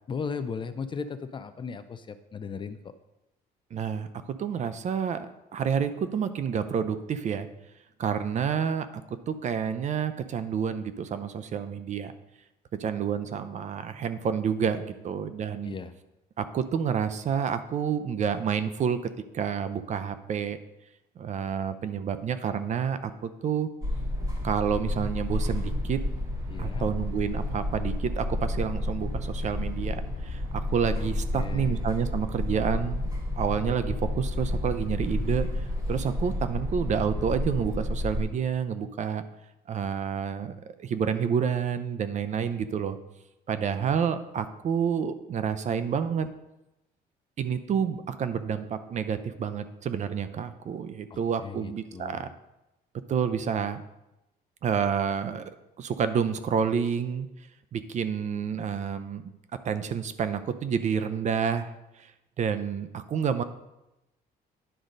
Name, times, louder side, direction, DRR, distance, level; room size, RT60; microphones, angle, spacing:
voice 1, 0.1-2.9 15.6-16.0 26.5-26.9 31.0-31.9 51.1-52.3, left 5 dB, 30° left, 11 dB, 0.5 m, -37 dB
voice 2, 3.7-5.3 5.5-7.5 8.0-8.9 9.3-12.1 12.7-15.7 16.4-20.6 21.2-23.7 24.4-26.0 26.6-33.1 33.4-39.2 39.7-43.0 43.5-46.3 47.4-52.3 53.1-53.8 54.6-55.4 55.8-57.3 57.7-59.2 59.6-61.7 62.0-62.1 62.4-63.4, right 7 dB, 45° right, 11 dB, 0.6 m, -29 dB
sound 1, 23.8-38.2, left 1 dB, 20° right, 1.8 m, -30 dB
10.0 x 3.8 x 5.2 m, 0.94 s
cardioid pair, 110°, 17 cm